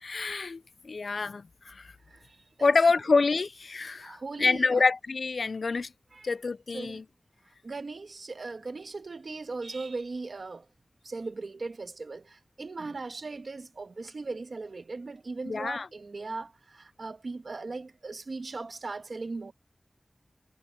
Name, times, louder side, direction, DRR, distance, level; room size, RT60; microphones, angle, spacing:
voice 1, 0.0-1.9 2.6-5.9 6.2-7.0 15.5-15.9, left 4 dB, 80° left, 0.4 m, -27 dB
voice 2, 2.1-2.7 4.0-4.8 6.1-6.3 6.7-7.0 7.6-10.7 11.0-19.5, right 3 dB, 70° right, 1.4 m, -38 dB
wide cardioid pair, 70°, 0 cm